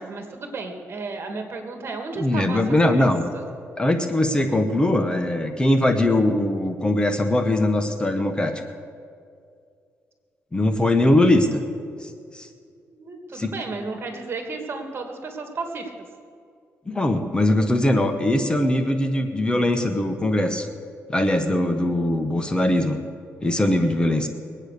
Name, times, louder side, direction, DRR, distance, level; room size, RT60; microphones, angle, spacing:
voice 1, 0.0-2.6 3.0-3.1 3.3-3.4 12.9-15.9, right 3 dB, 45° right, 4 dB, 2.5 m, -33 dB
voice 2, 2.2-3.3 3.8-8.6 10.5-11.6 12.0-12.5 13.3-13.5 16.9-20.7 21.1-23.0 23.4-24.3, left 1 dB, 15° left, 6 dB, 1.2 m, -21 dB
22.0 x 9.0 x 6.7 m, 2.3 s
cardioid pair, 95°, 5 cm